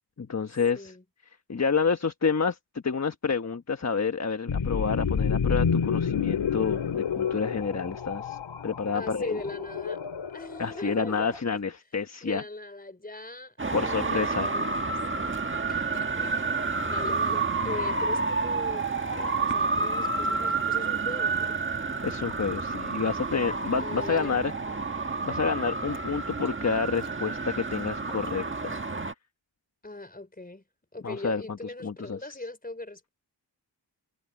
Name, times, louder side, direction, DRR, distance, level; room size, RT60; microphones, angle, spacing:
voice 1, 0.2-0.9 1.5-8.4 8.6-9.4 10.6-12.4 13.7-14.5 22.0-24.5 24.9-28.8 31.0-31.4 31.8-32.2, left 5 dB, 35° left, 1.2 m, -29 dB
voice 2, 0.7-1.0 8.9-10.0 10.3-11.6 12.2-15.0 15.7-16.4 16.8-21.5 23.8-24.4 29.8-30.6 30.9-33.1, left 2 dB, 20° left, 4.4 m, -40 dB
sound 1, 4.5-11.4, left 6 dB, 85° left, 2.6 m, -29 dB
Traffic noise roadway noise, 13.6-29.1, right 4 dB, 25° right, 1.6 m, -29 dB
wide cardioid pair, 95°, 44 cm